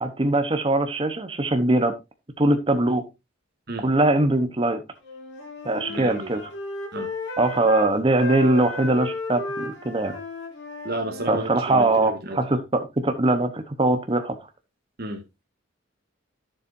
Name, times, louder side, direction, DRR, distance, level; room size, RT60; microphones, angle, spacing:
voice 1, 0.0-1.9 2.4-3.0 3.8-4.8 5.6-6.4 7.4-10.1 11.3-14.4, right 2 dB, 25° right, 0.9 m, -22 dB
Wind instrument woodwind instrument, 5.0-7.9 8.2-11.5, left 2 dB, 60° left, 3.5 m, -34 dB
voice 2, 5.9-6.3 6.9-7.1 10.1-10.2 10.8-12.4 15.0-15.2, right 2 dB, 50° right, 1.7 m, -32 dB
11.5 x 7.5 x 2.6 m
head